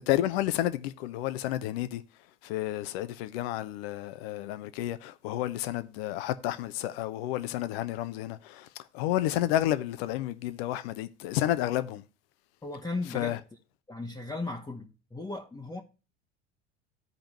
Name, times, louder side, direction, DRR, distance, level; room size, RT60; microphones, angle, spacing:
voice 1, 0.0-2.0 2.4-8.7 8.9-12.0 13.1-13.4, left 13 dB, 55° left, 0.9 m, -31 dB
voice 2, 12.6-13.4 13.9-15.8, left 2 dB, 10° left, 1.1 m, -36 dB
15.0 x 5.1 x 2.9 m
figure-of-eight pair, 75°, 35 cm